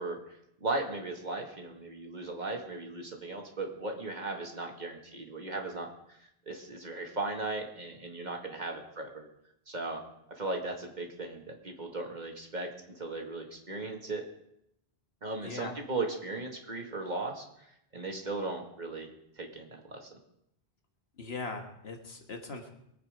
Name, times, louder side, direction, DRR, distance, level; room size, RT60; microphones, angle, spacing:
voice 1, 0.0-9.3 9.7-10.0 10.3-14.2 15.2-19.1 19.4-20.2, right 2 dB, 45° right, 2 dB, 2.3 m, -37 dB
voice 2, 15.4-15.7 21.2-22.7, left 3 dB, 75° left, 4 dB, 1.8 m, -40 dB
23.5 x 8.7 x 5.1 m, 0.78 s
omnidirectional pair, 1.1 m